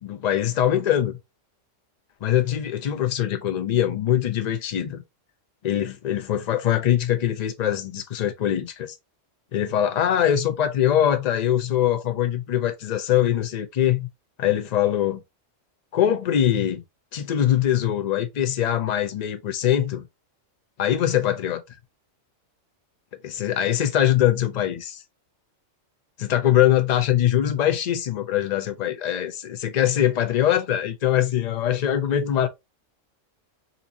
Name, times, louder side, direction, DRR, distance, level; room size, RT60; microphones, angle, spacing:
voice 1, 0.0-1.2 2.2-5.0 5.6-9.0 9.5-14.1 14.4-15.2 15.9-16.8 17.1-20.0 20.8-21.6 23.2-25.0 26.2-32.5, left 11 dB, 80° left, 0.3 m, -22 dB
4.1 x 2.5 x 2.7 m
omnidirectional pair, 1.3 m